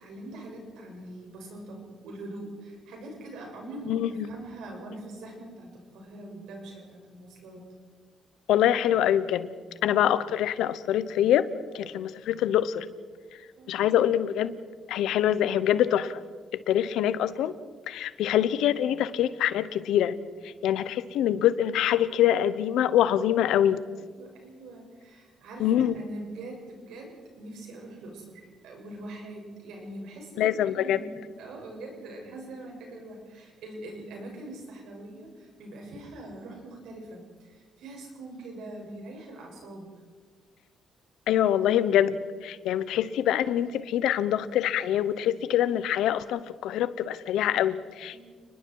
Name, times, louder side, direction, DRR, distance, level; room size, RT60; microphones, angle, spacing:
voice 1, 0.0-7.7 13.5-14.0 24.2-30.5 30.8-39.9 48.1-48.2, right 1 dB, 85° right, 0 dB, 6.6 m, -43 dB
voice 2, 3.9-4.2 8.5-9.5 9.8-11.5 11.7-12.9 13.7-14.5 14.9-16.2 16.5-17.5 17.9-20.2 20.4-23.8 25.6-26.0 30.4-31.0 41.3-48.2, left 11 dB, 85° left, 15 dB, 1.0 m, -25 dB
29.5 x 20.5 x 4.8 m, 1.5 s
cardioid pair, 90°, 0 cm